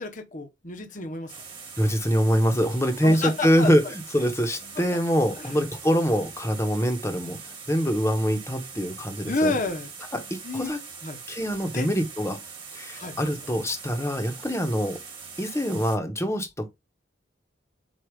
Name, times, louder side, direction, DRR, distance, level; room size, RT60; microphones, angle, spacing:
voice 1, 0.0-1.3 3.0-3.9 4.7-4.8 5.4-5.6 5.9-6.0 9.2-9.9 10.4-10.7 11.0-11.2 11.7-11.9 12.9-13.3, left 2 dB, 40° left, 1.2 m, -30 dB
sound 1, 1.3-16.0, right 5 dB, 25° right, 1.8 m, -42 dB
voice 2, 1.8-7.4 7.7-9.5 10.1-10.8 11.3-12.4 12.7-15.0 15.4-16.7, equal, 15° left, 1.2 m, -24 dB
8.0 x 2.8 x 5.2 m
head